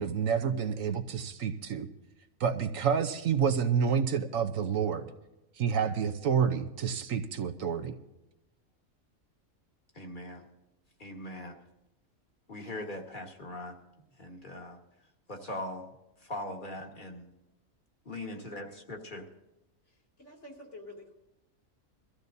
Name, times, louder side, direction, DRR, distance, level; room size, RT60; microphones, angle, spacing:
voice 1, 0.0-1.9 2.4-5.1 5.6-7.9, right 7 dB, 70° right, 7 dB, 1.3 m, -29 dB
voice 2, 9.9-10.5 11.0-11.6 12.5-13.8 14.2-14.8 15.3-15.9 16.2-17.3 18.0-19.3, left 1 dB, 35° left, 2 dB, 1.9 m, -40 dB
voice 3, 18.5-18.8 20.2-21.1, left 2 dB, 60° left, -1 dB, 3.0 m, -48 dB
23.0 x 14.5 x 2.7 m, 0.96 s
omnidirectional pair, 1.4 m